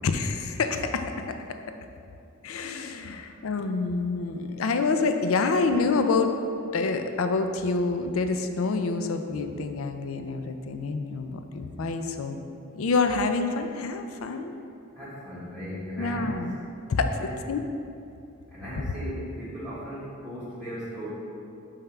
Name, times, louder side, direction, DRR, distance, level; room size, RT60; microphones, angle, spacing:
voice 1, 0.0-1.6 2.4-6.3 6.7-12.4 12.7-14.5 16.0-16.6 16.9-17.6, left 4 dB, 85° left, 7 dB, 0.4 m, -27 dB
voice 2, 3.0-3.4 14.9-16.3 17.2-17.4 18.5-21.1, equal, ahead, -12 dB, 1.1 m, -37 dB
5.4 x 3.5 x 5.7 m, 2.6 s
head